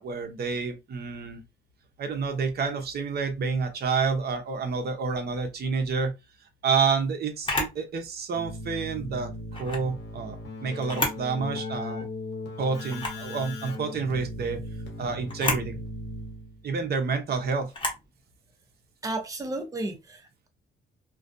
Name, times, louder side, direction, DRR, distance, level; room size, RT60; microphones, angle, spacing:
voice 1, 0.0-1.4 2.0-6.1 6.6-9.3 9.6-12.0 12.6-14.6 15.0-15.8 16.6-17.7, right 5 dB, 55° right, 0.7 m, -29 dB
Camera, 7.4-7.8 9.5-9.9 10.8-11.3 11.7-11.8 12.9-13.3 15.3-15.7 17.7-18.1, left 2 dB, 25° left, 1.0 m, -30 dB
Keyboard (musical), 8.3-16.7, left 2 dB, 60° left, 1.0 m, -38 dB
voice 2, 19.0-20.5, right 2 dB, 15° right, 0.7 m, -33 dB
2.3 x 2.2 x 2.5 m
cardioid pair, 90°, 20 cm